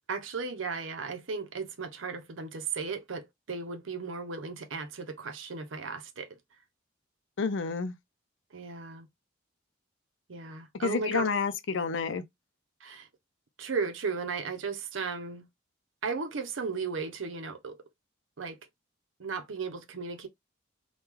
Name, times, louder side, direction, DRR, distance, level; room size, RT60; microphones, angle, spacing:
voice 1, 0.1-6.4 8.5-9.1 10.3-11.3 12.8-13.1 13.6-15.5 16.0-17.8 18.4-18.6 19.2-20.3, right 4 dB, 80° right, 0.7 m, -35 dB
voice 2, 7.4-7.9 10.8-12.2, left 5 dB, 70° left, 0.5 m, -29 dB
3.0 x 2.3 x 3.5 m
head